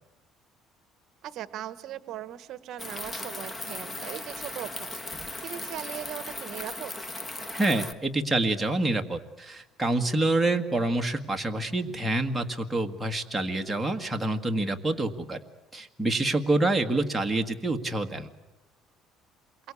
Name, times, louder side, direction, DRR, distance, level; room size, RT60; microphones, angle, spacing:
voice 1, 1.2-6.9 16.6-16.7, right 12 dB, 60° right, 14 dB, 1.1 m, -39 dB
sound 1, 2.8-7.9, left 2 dB, 15° left, 1.4 m, -37 dB
voice 2, 7.5-15.4 15.7-18.3, right 2 dB, 5° right, 3 dB, 1.7 m, -27 dB
28.0 x 23.5 x 8.5 m, 0.97 s
cardioid pair, 135°, 0 cm